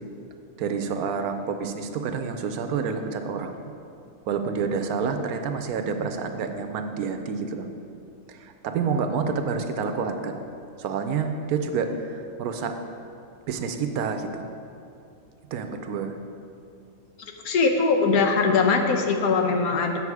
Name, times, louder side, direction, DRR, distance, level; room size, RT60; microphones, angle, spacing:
voice 1, 0.6-3.6 4.3-7.7 8.3-10.4 10.8-12.8 13.5-14.5 15.5-16.2, right 5 dB, 80° right, 6 dB, 1.1 m, -28 dB
voice 2, 17.4-20.0, left 4 dB, 75° left, 4 dB, 1.2 m, -21 dB
8.4 x 6.6 x 4.7 m, 2.6 s
omnidirectional pair, 1.6 m